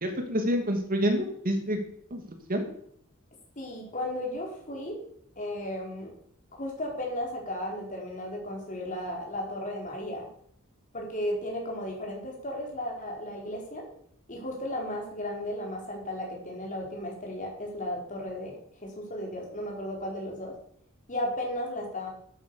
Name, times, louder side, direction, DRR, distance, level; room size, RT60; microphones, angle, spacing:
voice 1, 0.0-1.8 2.1-2.2 2.5-2.7, equal, 45° right, 4 dB, 2.7 m, -27 dB
voice 2, 3.6-5.0 5.4-6.1 6.5-10.3 10.9-13.9 14.3-20.5 21.1-22.1, left 1 dB, 40° left, -1 dB, 4.8 m, -35 dB
12.0 x 9.3 x 7.2 m, 0.66 s
head